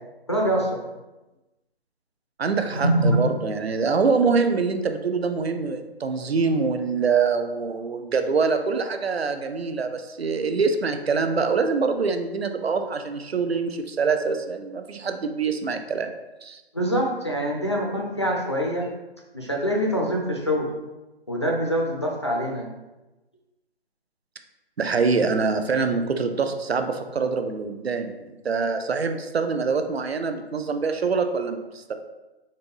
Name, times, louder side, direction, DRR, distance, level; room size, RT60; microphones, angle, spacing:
voice 1, 0.3-0.8 2.7-3.2 16.7-18.9 19.3-20.7 21.3-22.7, equal, 25° left, -1 dB, 0.6 m, -24 dB
voice 2, 2.4-16.1 16.4-16.6 24.8-31.9, right 4 dB, 70° right, 7 dB, 0.8 m, -25 dB
4.4 x 4.0 x 5.3 m, 1.1 s
hypercardioid pair, 180°, 32 cm